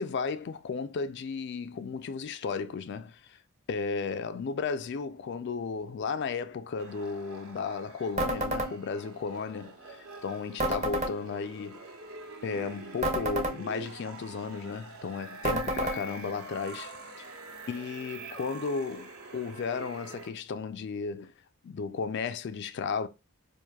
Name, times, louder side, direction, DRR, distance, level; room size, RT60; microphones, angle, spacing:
voice 1, 0.0-3.4 3.7-9.8 10.2-11.8 12.4-17.3 17.7-21.3 21.6-23.1, left 5 dB, 50° left, 0.3 m, -34 dB
sound 1, 6.8-20.3, right 3 dB, 70° right, 1.0 m, -45 dB
sound 2, 8.2-8.7 10.6-11.1 13.0-13.6 15.4-16.0, right 1 dB, 30° right, 0.7 m, -29 dB
4.6 x 2.5 x 2.3 m
head